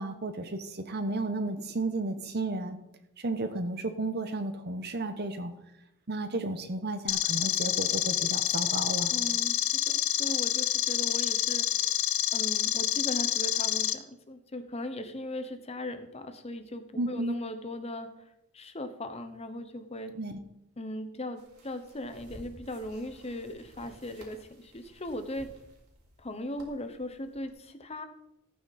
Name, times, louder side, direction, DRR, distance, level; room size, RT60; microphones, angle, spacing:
voice 1, 0.0-2.8 3.2-5.5 6.1-9.1 17.0-17.4 20.1-20.4, right 2 dB, 45° right, 8 dB, 1.0 m, -33 dB
sound 1, 7.1-13.9, left 13 dB, 60° left, 0.7 m, -28 dB
voice 2, 9.1-11.7 12.3-18.2 18.5-20.1 20.8-25.5 26.2-28.1, left 1 dB, 30° left, 9 dB, 1.0 m, -38 dB
sound 2, 21.4-27.5, equal, 80° right, 3.4 m, -54 dB
15.0 x 9.1 x 4.2 m, 0.83 s
head